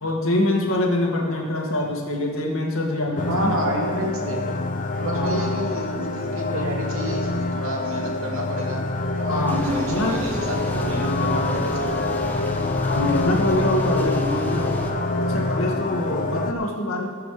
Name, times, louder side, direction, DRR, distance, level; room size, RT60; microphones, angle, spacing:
voice 1, 0.0-3.6 5.1-5.6 6.9-7.0 9.3-10.1 12.9-14.8 15.2-17.1, left 1 dB, 80° left, 0 dB, 2.0 m, -24 dB
sound 1, 3.2-16.5, left 2 dB, 40° left, 0.8 m, -26 dB
voice 2, 3.2-4.6 5.0-8.8 9.2-11.9, right 1 dB, 85° right, -1 dB, 2.5 m, -30 dB
sound 2, 9.5-14.9, equal, 10° left, 1.2 m, -33 dB
19.5 x 7.0 x 4.9 m, 2.1 s
head